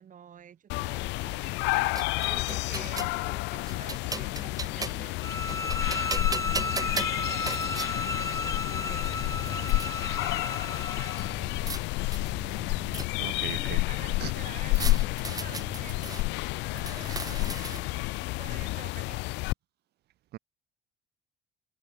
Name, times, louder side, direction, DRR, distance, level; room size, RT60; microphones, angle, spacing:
voice 1, 0.0-5.2 5.4-6.3 6.6-11.4 13.2-19.3, right 8 dB, 45° right, 6.1 m, -50 dB
sound 1, 0.7-19.5, left 23 dB, 90° left, 1.3 m, -30 dB
sound 2, 1.5-3.2 3.7-5.1 5.5-7.9 8.7-8.8 9.1-9.9 11.2-11.8 12.1-13.4 14.7-16.2 16.7-18.0, right 3 dB, 20° right, 2.6 m, -38 dB
sound 3, 5.2-11.4, left 3 dB, 20° left, 3.5 m, -34 dB
voice 2, 13.2-13.8 14.2-14.3 14.8-15.0 20.3-20.4, right 14 dB, 65° right, 1.1 m, -38 dB
cardioid pair, 100°, 18 cm